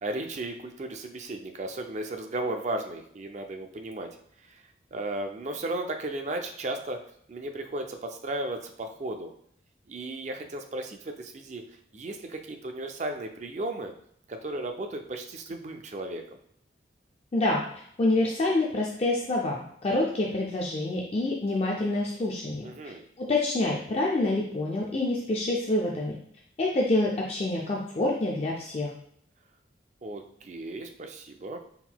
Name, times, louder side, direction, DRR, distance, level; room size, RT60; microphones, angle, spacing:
voice 1, 0.0-4.1 4.9-7.0 7.3-9.3 9.9-11.6 11.9-13.9 14.3-16.2 22.6-23.0 30.0-31.6, right 2 dB, 40° right, 5 dB, 0.4 m, -35 dB
voice 2, 18.0-26.2 26.6-28.9, left 2 dB, 30° left, -2 dB, 0.4 m, -27 dB
4.4 x 3.7 x 2.2 m, 0.67 s
head